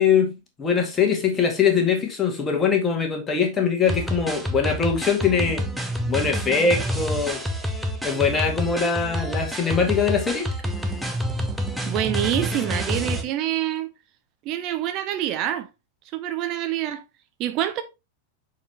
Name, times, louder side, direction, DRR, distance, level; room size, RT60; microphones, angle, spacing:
voice 1, 0.0-5.6 6.1-7.4 8.0-10.5, left 6 dB, 20° left, 1.9 m, -22 dB
sound 1, 3.9-13.2, equal, 5° right, 1.1 m, -28 dB
voice 2, 11.8-13.9 14.4-15.7 16.1-17.0 17.4-17.8, right 12 dB, 40° right, 0.7 m, -26 dB
7.0 x 4.7 x 3.3 m
figure-of-eight pair, 90°, 0 cm